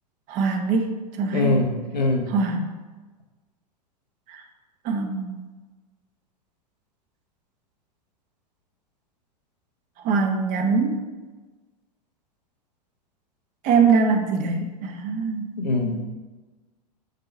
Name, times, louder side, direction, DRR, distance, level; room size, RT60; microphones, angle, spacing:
voice 1, 0.3-1.6 2.3-2.7 4.3-4.4 4.8-5.4 10.0-11.0 13.6-15.5, right 4 dB, 40° right, 4 dB, 0.9 m, -23 dB
voice 2, 1.3-2.3 15.6-16.0, left 2 dB, 85° left, 2 dB, 1.1 m, -23 dB
5.3 x 3.8 x 5.3 m, 1.3 s
hypercardioid pair, 100°, 21 cm